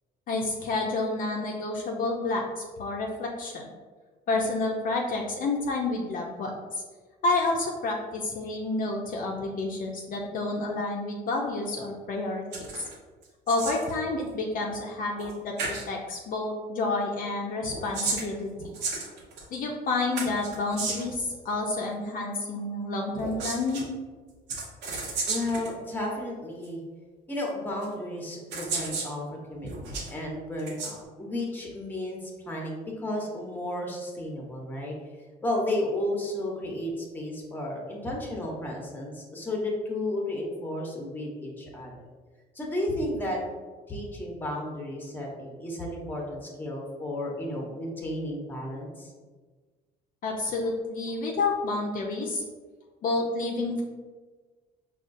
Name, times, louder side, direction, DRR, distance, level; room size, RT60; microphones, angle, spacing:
voice 1, 0.3-3.7 4.3-6.8 7.2-12.7 13.5-15.5 15.9-18.5 19.5-23.9 50.2-52.4 53.0-53.8, left 2 dB, 55° left, 0 dB, 0.5 m, -29 dB
sound 1, 12.5-12.9 13.2-13.9 15.2-15.3 15.6-15.9 17.6-19.6 20.2-21.2 23.1-23.8 24.5-25.7 26.6-26.7 27.8-27.9 28.5-29.1 29.6-30.1 30.6-30.9, right 3 dB, 85° right, 0.8 m, -33 dB
voice 2, 25.3-26.8 27.3-34.9 35.4-41.9 42.5-43.4 43.9-49.1, left 1 dB, 10° left, -1 dB, 0.9 m, -33 dB
5.0 x 2.3 x 2.6 m, 1.4 s
cardioid pair, 110°, 17 cm